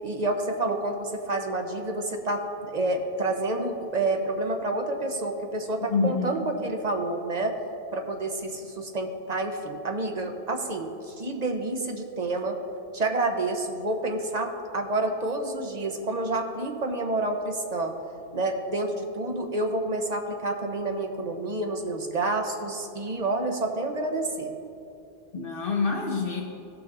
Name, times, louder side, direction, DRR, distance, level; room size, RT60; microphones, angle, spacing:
voice 1, 0.0-7.6 7.9-12.6 12.9-17.9 18.3-24.5, right 2 dB, 45° right, 3 dB, 0.9 m, -29 dB
voice 2, 5.9-6.5 25.3-26.4, left 4 dB, 65° left, 1 dB, 1.0 m, -27 dB
15.5 x 5.9 x 3.9 m, 2.8 s
omnidirectional pair, 1.0 m